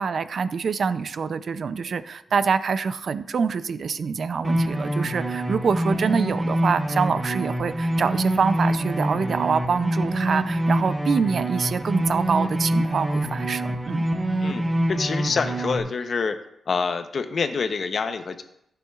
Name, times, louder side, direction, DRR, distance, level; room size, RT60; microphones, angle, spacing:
voice 1, 0.0-14.0, right 5 dB, 55° right, 13 dB, 0.4 m, -25 dB
sound 1, 4.4-15.8, right 1 dB, 15° right, 1.0 m, -25 dB
voice 2, 14.4-16.3 16.7-18.4, left 5 dB, 50° left, 8 dB, 0.7 m, -26 dB
14.5 x 6.9 x 2.4 m, 0.79 s
wide cardioid pair, 125°, 0 cm